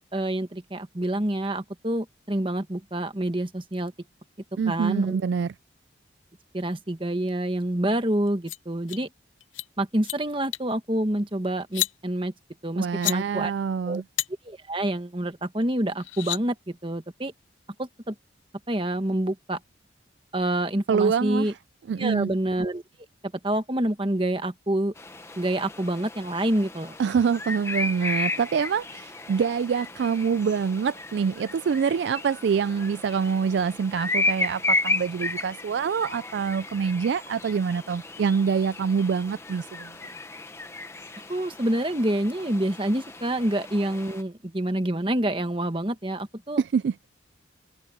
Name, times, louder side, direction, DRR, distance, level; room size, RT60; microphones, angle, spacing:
voice 1, 0.1-3.9 4.7-5.2 6.5-9.1 9.8-12.3 12.6-13.5 13.8-14.0 14.4-17.3 17.8-18.1 18.7-19.6 20.3-21.5 22.0-22.8 23.4-24.9 25.4-27.0 41.3-46.6, right 1 dB, 25° right, 1.4 m, -27 dB
voice 2, 4.6-5.5 12.8-14.0 20.9-21.5 21.9-22.3 27.0-39.9 46.6-47.0, right 6 dB, 65° right, 0.3 m, -25 dB
sound 1, 8.3-8.6 8.9-9.0 9.4-9.7 9.9-10.2 10.5-10.7 11.6-11.9 12.8-13.2 14.2-14.3 15.6-15.7 16.0-16.4, left 15 dB, 85° left, 0.8 m, -29 dB
sound 2, 25.0-44.2, left 2 dB, 15° left, 1.0 m, -34 dB
open air
head